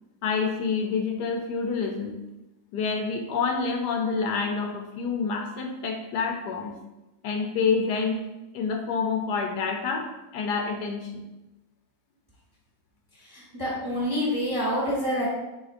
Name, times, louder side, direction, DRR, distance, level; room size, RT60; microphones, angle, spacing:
voice 1, 0.2-2.2 2.7-6.8 7.2-8.2 8.5-11.2, left 5 dB, 75° left, 3 dB, 1.1 m, -28 dB
voice 2, 13.3-15.3, equal, 20° right, -5 dB, 0.7 m, -27 dB
5.0 x 3.5 x 2.5 m, 1.0 s
omnidirectional pair, 1.9 m